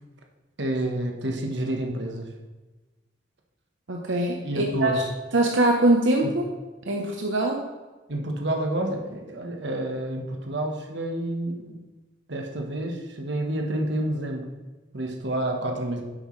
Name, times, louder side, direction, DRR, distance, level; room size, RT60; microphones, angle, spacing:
voice 1, 0.6-2.3 4.4-5.0 6.2-6.3 8.1-11.8 12.3-14.5 14.9-16.0, right 1 dB, 70° right, 2 dB, 1.3 m, -29 dB
voice 2, 3.9-5.0 5.3-6.4 6.9-7.6, right 1 dB, 90° right, 1 dB, 0.9 m, -22 dB
9.9 x 7.8 x 3.2 m, 1.2 s
head